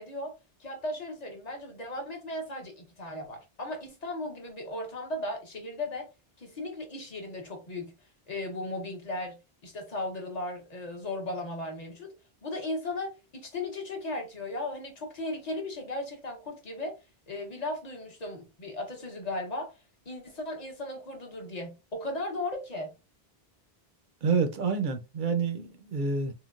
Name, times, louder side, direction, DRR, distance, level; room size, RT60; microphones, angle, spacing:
voice 1, 0.0-6.1 6.4-7.9 8.3-12.1 12.4-17.0 17.3-19.7 20.1-22.9, left 2 dB, 45° left, 0.9 m, -36 dB
voice 2, 24.2-26.3, right 5 dB, 60° right, 0.6 m, -28 dB
3.7 x 2.2 x 2.4 m
omnidirectional pair, 1.0 m